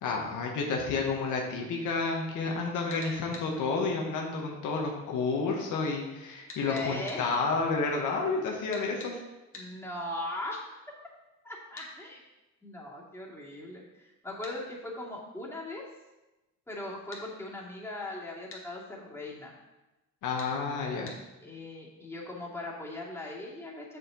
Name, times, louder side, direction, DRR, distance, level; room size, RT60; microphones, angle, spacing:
voice 1, 0.0-9.2 20.2-21.1, left 4 dB, 80° left, 0 dB, 1.3 m, -30 dB
sound 1, 2.9-3.5 6.5-7.2 8.7-9.1 9.5-9.7 11.8-11.9 14.4-14.6 17.1-17.3 18.5-18.7 20.4-20.5 21.1-21.2, left 2 dB, 45° left, 1.8 m, -45 dB
voice 2, 6.6-7.3 9.5-10.6 11.4-12.2 12.6-15.8 16.7-19.5 21.4-24.0, left 2 dB, 10° left, -5 dB, 2.3 m, -39 dB
6.9 x 6.8 x 3.9 m, 1.0 s
cardioid pair, 90°, 30 cm